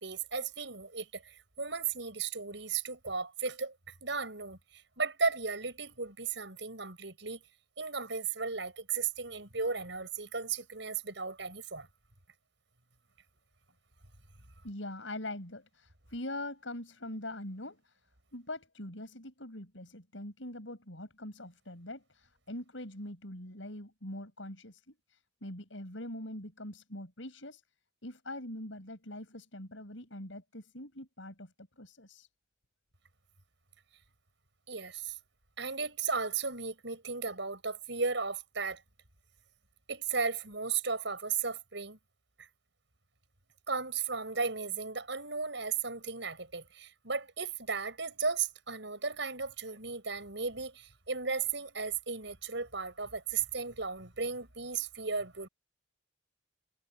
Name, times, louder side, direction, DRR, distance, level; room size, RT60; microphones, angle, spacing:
voice 1, 0.0-3.8 4.0-7.4 7.8-11.9 34.7-35.2 35.6-38.8 39.9-42.0 42.4-42.5 43.7-55.5, right 5 dB, 65° right, 6.8 m, -35 dB
voice 2, 14.6-17.8 18.3-24.9 25.4-27.6 28.0-32.3, left 1 dB, 75° left, 6.6 m, -43 dB
head